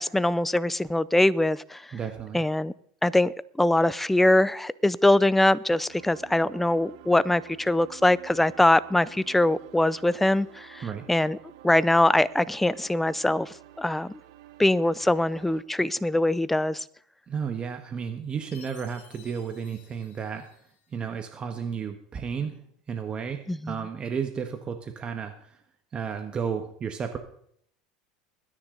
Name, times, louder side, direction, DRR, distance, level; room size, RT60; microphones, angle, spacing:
voice 1, 0.0-1.8 2.3-2.7 3.0-11.4 11.6-14.1 14.6-16.8 23.5-23.8, left 1 dB, 5° left, 0.5 m, -23 dB
voice 2, 1.9-2.4 10.8-11.0 17.3-20.5 20.9-22.6 22.9-25.6 25.9-27.2, right 6 dB, 30° right, 1.6 m, -33 dB
sound 1, 5.9-15.6, right 12 dB, 75° right, 1.3 m, -50 dB
Chime, 18.5-21.0, left 8 dB, 50° left, 4.1 m, -55 dB
20.5 x 10.0 x 4.0 m
hypercardioid pair, 95°, 3 cm